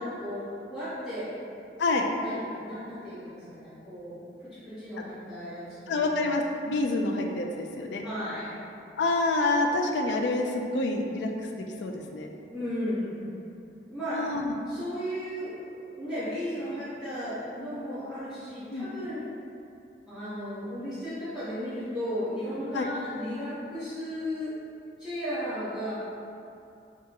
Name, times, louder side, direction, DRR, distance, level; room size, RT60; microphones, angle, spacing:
voice 1, 0.0-1.3 2.2-6.0 8.0-8.5 12.5-13.2 13.9-14.2 14.6-19.2 20.1-24.5 25.0-25.9, equal, ahead, -20 dB, 1.2 m, -35 dB
voice 2, 5.9-8.0 9.0-12.3 14.1-14.5 18.7-18.9 22.7-22.9, left 2 dB, 90° left, 2 dB, 0.4 m, -27 dB
5.8 x 2.4 x 2.8 m, 2.6 s
head